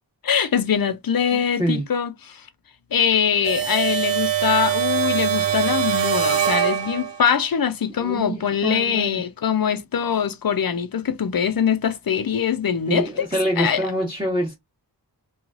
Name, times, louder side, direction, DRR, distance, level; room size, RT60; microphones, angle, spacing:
voice 1, 0.2-2.5 2.9-13.3 13.6-13.8, left 7 dB, 55° left, 0.5 m, -23 dB
voice 2, 1.3-1.8 8.0-9.2 12.9-14.5, right 1 dB, 10° right, 1.1 m, -25 dB
sound 1, 3.4-7.3, right 9 dB, 75° right, 0.6 m, -23 dB
3.1 x 2.2 x 2.4 m
wide cardioid pair, 60°, 44 cm